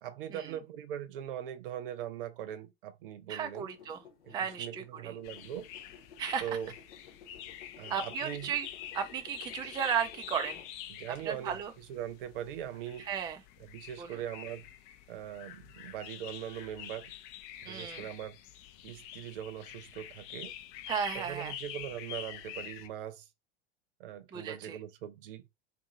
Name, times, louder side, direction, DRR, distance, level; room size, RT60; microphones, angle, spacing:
voice 1, 0.0-3.7 4.2-5.7 6.4-6.7 7.8-8.5 10.9-13.1 13.7-14.7 15.1-17.1 17.6-18.4 18.8-20.5 21.1-23.3 24.0-25.5, right 10 dB, 65° right, 0.6 m, -41 dB
voice 2, 3.3-4.0 4.3-5.2 6.2-6.5 7.9-8.7 8.9-10.6 11.2-11.7 13.0-13.4 14.0-14.2 17.6-18.1 20.9-21.5 24.3-24.8, right 8 dB, 15° right, 0.3 m, -35 dB
sound 1, 3.4-11.2, left 7 dB, 75° left, 1.0 m, -56 dB
sound 2, 5.2-22.9, left 11 dB, 50° left, 0.5 m, -46 dB
2.6 x 2.5 x 2.7 m
figure-of-eight pair, 80°, 30 cm